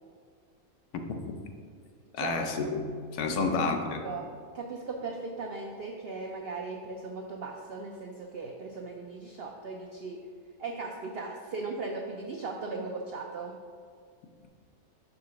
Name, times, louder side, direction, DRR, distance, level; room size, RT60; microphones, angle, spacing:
voice 1, 2.1-4.1, left 4 dB, 80° left, 5 dB, 1.2 m, -30 dB
voice 2, 4.5-10.2 10.6-13.5, right 3 dB, 80° right, 1 dB, 0.5 m, -38 dB
5.3 x 3.8 x 5.8 m, 2.1 s
omnidirectional pair, 1.6 m